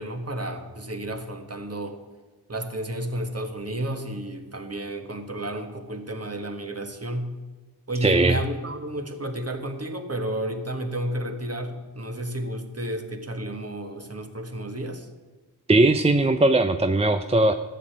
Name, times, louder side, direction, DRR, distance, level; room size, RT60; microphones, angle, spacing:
voice 1, 0.0-2.0 2.5-7.3 7.9-15.1, right 1 dB, 35° right, 6 dB, 1.6 m, -31 dB
voice 2, 8.0-8.4 15.7-17.5, right 2 dB, 15° right, 8 dB, 0.5 m, -19 dB
12.5 x 6.7 x 8.7 m, 1.3 s
cardioid pair, 45°, 41 cm